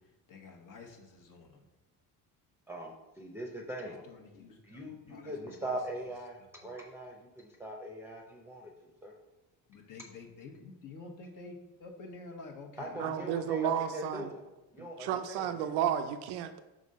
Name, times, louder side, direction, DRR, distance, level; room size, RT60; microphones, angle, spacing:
voice 1, 0.0-1.6 3.8-5.8 6.6-6.7 9.7-13.5, left 3 dB, 55° left, 3 dB, 1.1 m, -50 dB
voice 2, 2.7-4.0 4.6-8.7 9.0-9.1 12.8-14.4 14.7-15.7, right 1 dB, 5° right, 0 dB, 0.7 m, -41 dB
voice 3, 13.0-14.3 14.8-16.6, right 9 dB, 85° right, 9 dB, 0.5 m, -32 dB
5.1 x 3.8 x 5.3 m, 1.0 s
cardioid pair, 100°, 38 cm